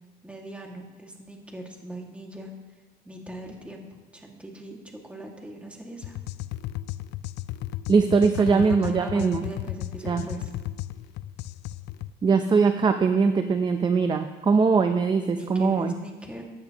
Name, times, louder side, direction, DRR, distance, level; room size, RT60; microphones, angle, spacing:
voice 1, 0.2-2.5 3.0-4.8 5.0-6.2 8.4-10.5 15.3-16.4, right 2 dB, 5° right, 0 dB, 2.0 m, -38 dB
sound 1, 6.0-12.1, left 15 dB, 80° left, 0.4 m, -35 dB
voice 2, 7.9-9.4 10.0-10.2 12.2-15.9, right 5 dB, 25° right, 8 dB, 0.6 m, -21 dB
15.5 x 10.0 x 3.0 m, 1.2 s
cardioid pair, 110°, 17 cm